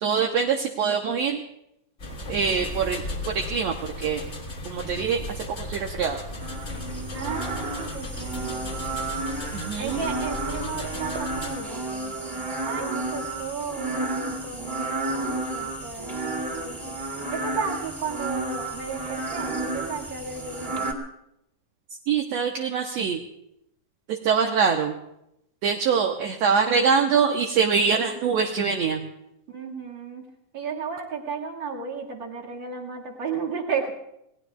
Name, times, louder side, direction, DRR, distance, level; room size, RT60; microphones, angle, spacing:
voice 1, 0.0-1.4 2.3-4.2 4.7-6.2 9.5-10.0 22.1-23.2 24.1-25.0 25.6-29.1, right 6 dB, 70° right, 2 dB, 1.9 m, -24 dB
sound 1, 2.0-11.5, left 1 dB, 35° left, 1.2 m, -36 dB
sound 2, 6.4-20.9, right 2 dB, 10° right, 2.2 m, -32 dB
voice 2, 7.1-8.8 9.8-17.0 17.3-20.9 29.5-30.3 30.5-33.9, right 5 dB, 40° right, -1 dB, 2.5 m, -34 dB
28.5 x 18.5 x 2.4 m, 0.82 s
omnidirectional pair, 3.6 m